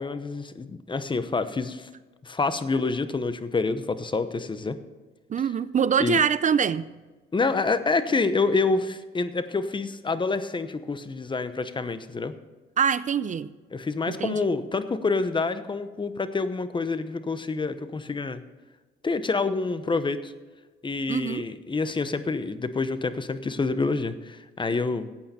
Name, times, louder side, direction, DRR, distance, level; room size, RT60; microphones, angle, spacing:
voice 1, 0.0-1.9 2.2-4.8 6.0-6.2 7.3-12.3 13.7-18.4 19.0-20.3 20.8-25.1, left 3 dB, 25° left, 0.9 m, -27 dB
voice 2, 5.3-6.9 12.8-13.5 14.1-14.4 21.1-21.5, right 7 dB, 40° right, 0.4 m, -24 dB
14.5 x 8.5 x 4.4 m
cardioid pair, 90°, 20 cm